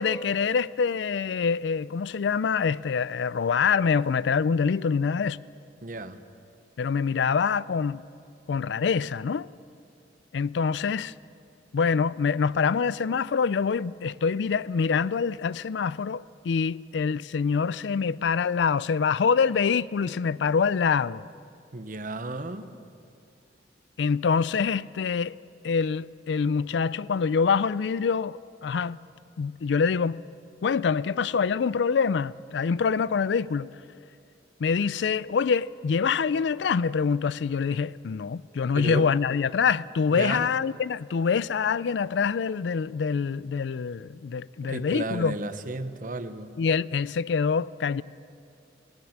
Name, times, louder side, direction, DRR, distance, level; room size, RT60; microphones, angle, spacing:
voice 1, 0.0-5.4 6.8-8.0 8.5-9.5 10.3-11.1 11.7-21.2 24.0-25.4 25.6-29.0 29.4-30.2 30.6-33.7 34.6-45.3 46.6-48.0, left 5 dB, 75° left, 0.4 m, -25 dB
voice 2, 5.8-6.2 21.7-22.7 38.7-39.0 40.1-40.5 44.6-46.5, right 2 dB, 50° right, 0.9 m, -33 dB
20.0 x 17.5 x 7.3 m
head